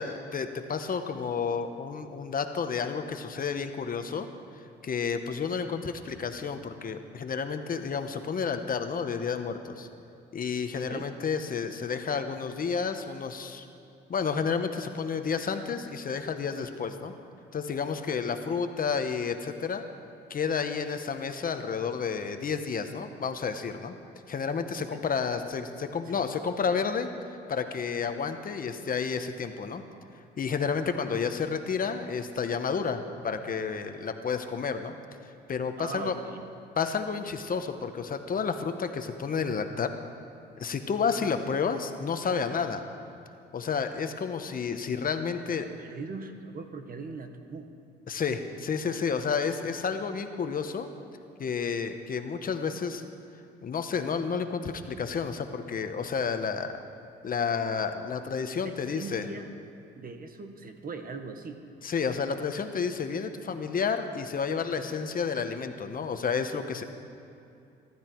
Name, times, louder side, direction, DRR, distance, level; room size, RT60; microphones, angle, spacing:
voice 1, 0.0-4.3 4.8-9.9 10.3-13.7 14.1-17.1 17.5-19.8 20.3-23.9 24.3-27.1 27.5-29.8 30.4-34.9 35.5-36.2 36.8-40.0 40.6-42.8 43.5-45.7 48.1-50.9 51.4-53.0 53.6-56.8 57.2-59.2 61.8-66.8, left 6 dB, 45° left, 7 dB, 1.1 m, -31 dB
voice 2, 35.8-36.4 45.8-47.7 58.6-59.5 60.0-61.6, right 4 dB, 45° right, 6 dB, 1.5 m, -40 dB
24.0 x 12.5 x 4.6 m, 2.6 s
cardioid pair, 90°, 20 cm